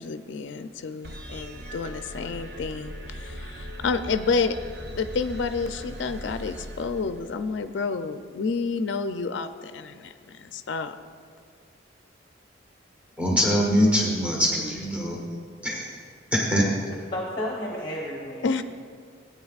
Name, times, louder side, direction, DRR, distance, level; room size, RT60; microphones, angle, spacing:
voice 1, 0.0-4.6 4.9-10.9 18.4-18.6, left 4 dB, 65° left, 9 dB, 0.4 m, -29 dB
sound 1, 1.0-7.6, equal, 55° right, 0.8 m, -39 dB
voice 2, 13.2-15.2 15.6-15.9 16.3-16.7, equal, 5° right, -2 dB, 1.1 m, -23 dB
voice 3, 16.9-18.6, equal, 25° left, -3 dB, 0.9 m, -32 dB
16.5 x 8.9 x 2.4 m, 2.1 s
head